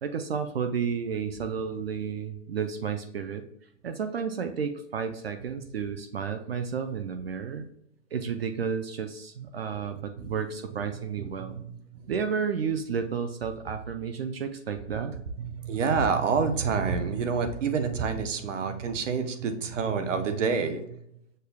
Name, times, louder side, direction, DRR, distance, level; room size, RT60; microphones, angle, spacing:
voice 1, 0.0-3.5 3.8-7.7 8.1-11.6 12.1-15.2, right 6 dB, 55° right, 8 dB, 0.4 m, -32 dB
voice 2, 10.9-12.0 14.9-15.0 15.4-21.0, right 5 dB, 75° right, 9 dB, 0.9 m, -28 dB
6.5 x 2.3 x 3.3 m, 0.75 s
hypercardioid pair, 175°, 37 cm